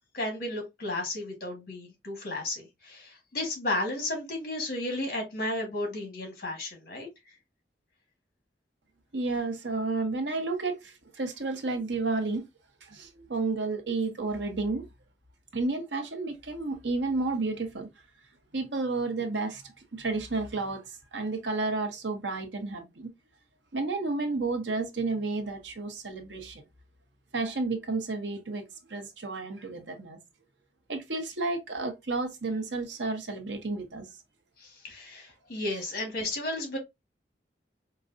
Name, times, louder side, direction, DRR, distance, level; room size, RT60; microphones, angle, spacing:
voice 1, 0.1-7.1 34.6-36.8, left 1 dB, 55° left, 1.6 m, -33 dB
voice 2, 9.1-12.4 12.8-14.9 15.5-17.9 18.5-23.1 23.7-26.6 27.3-28.6 28.9-30.2 30.9-34.0, right 3 dB, 85° right, 0.9 m, -31 dB
4.7 x 2.2 x 2.5 m
head